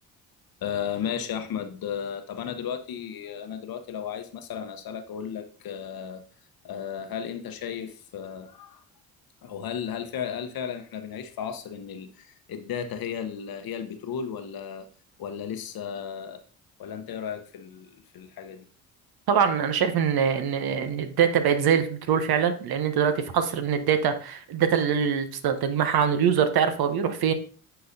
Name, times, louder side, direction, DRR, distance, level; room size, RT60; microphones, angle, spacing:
voice 1, 0.6-6.2 6.6-8.8 9.4-14.9 15.2-16.4 16.8-18.7, left 8 dB, 55° left, 1.0 m, -34 dB
voice 2, 19.3-27.3, right 7 dB, 60° right, 0.9 m, -23 dB
9.8 x 3.9 x 2.7 m
hypercardioid pair, 60°, 43 cm